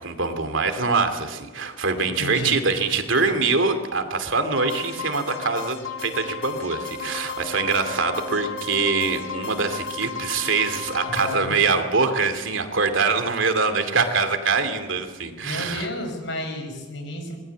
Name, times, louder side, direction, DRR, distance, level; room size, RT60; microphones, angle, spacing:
voice 1, 0.0-15.9, right 4 dB, 70° right, 7 dB, 2.6 m, -24 dB
voice 2, 2.2-2.6 11.0-11.6 15.4-17.4, left 1 dB, 65° left, 5 dB, 6.2 m, -31 dB
sound 1, 4.5-11.3, left 5 dB, 80° left, 2.8 m, -34 dB
26.0 x 20.5 x 8.4 m, 1.2 s
head